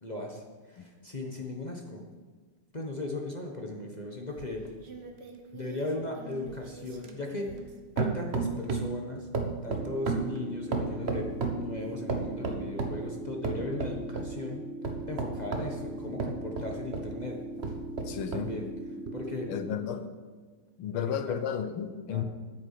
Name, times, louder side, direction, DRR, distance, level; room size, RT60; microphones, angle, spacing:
voice 1, 0.0-2.0 2.7-4.6 5.5-7.5 7.9-9.3 9.6-14.6 15.1-17.4 18.3-18.7 19.1-19.5 20.9-21.3 22.1-22.2, left 2 dB, 25° left, 0 dB, 1.0 m, -37 dB
sound 1, 4.4-7.7 8.0-9.0 9.3-11.7 12.1-13.0 13.4-14.3 14.8-17.1 17.6-18.5 19.1-19.2, right 4 dB, 40° right, 1.0 m, -34 dB
sound 2, 9.7-19.7, right 1 dB, 5° right, 1.0 m, -40 dB
voice 2, 18.1-18.5 19.5-20.0 20.8-22.2, left 8 dB, 75° left, 9 dB, 1.7 m, -33 dB
9.8 x 9.1 x 6.9 m, 1.5 s
omnidirectional pair, 2.4 m